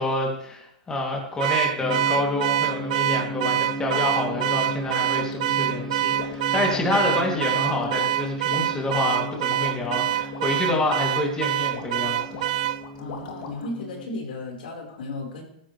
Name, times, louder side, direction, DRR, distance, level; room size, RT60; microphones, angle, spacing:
voice 1, 0.0-12.5, left 2 dB, 15° left, -1 dB, 2.8 m, -27 dB
Car / Alarm, 1.4-12.8, right 14 dB, 60° right, 0.5 m, -25 dB
sound 1, 1.8-14.1, right 1 dB, 10° right, 1.0 m, -35 dB
sound 2, 3.9-13.8, left 6 dB, 60° left, 2.9 m, -41 dB
voice 2, 13.0-15.4, left 2 dB, 80° left, 0 dB, 4.6 m, -34 dB
14.5 x 14.5 x 3.3 m, 0.75 s
hypercardioid pair, 140°, 5 cm